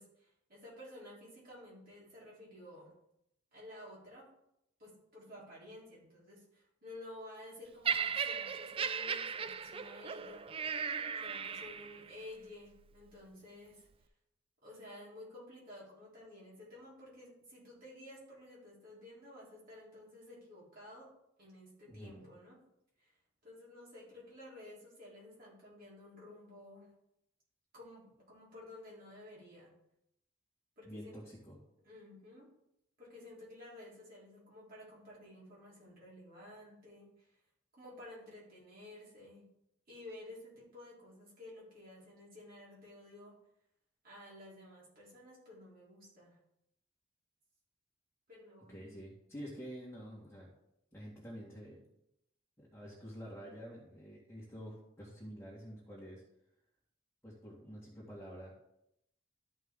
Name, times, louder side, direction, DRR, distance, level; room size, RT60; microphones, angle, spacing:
voice 1, 0.0-2.9 3.5-4.3 4.8-10.6 11.1-13.9 14.6-21.1 21.4-22.6 23.0-23.1 23.4-26.9 27.7-29.7 30.8-31.2 31.8-32.5 33.0-37.4 37.7-39.4 39.9-43.4 44.0-46.4 48.3-48.8, left 1 dB, 45° right, -7 dB, 3.8 m, -53 dB
Laughter, 7.8-12.1 12.9-13.1, right 6 dB, 25° right, 0.3 m, -37 dB
voice 2, 21.9-22.3 30.8-31.6 48.7-50.5 50.9-51.8 52.6-56.2 57.2-58.5, equal, 10° left, -8 dB, 2.1 m, -48 dB
13.0 x 5.4 x 3.8 m, 0.82 s
head